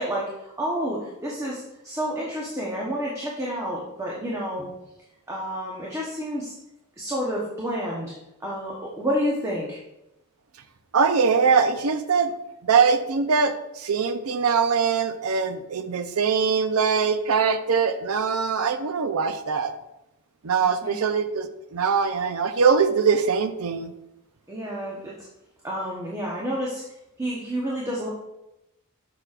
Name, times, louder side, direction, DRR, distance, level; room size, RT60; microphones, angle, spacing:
voice 1, 0.0-4.7 5.3-6.5 7.0-8.1 8.4-9.8 20.8-21.0 24.5-25.3 25.6-26.8 27.2-28.1, equal, 15° right, -4 dB, 0.9 m, -29 dB
voice 2, 10.9-12.3 12.6-19.7 20.4-23.9, right 5 dB, 85° right, 9 dB, 0.6 m, -22 dB
6.8 x 6.1 x 2.4 m, 0.90 s
head